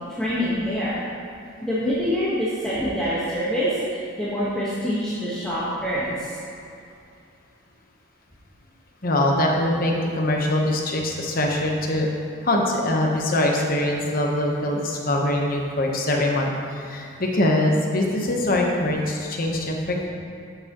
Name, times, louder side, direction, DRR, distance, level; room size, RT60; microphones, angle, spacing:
voice 1, 0.2-1.0 1.6-6.4, equal, 5° left, -11 dB, 1.2 m, -25 dB
voice 2, 9.0-12.1 12.4-20.1, left 1 dB, 40° left, 0 dB, 1.0 m, -23 dB
11.0 x 7.0 x 3.0 m, 2.6 s
head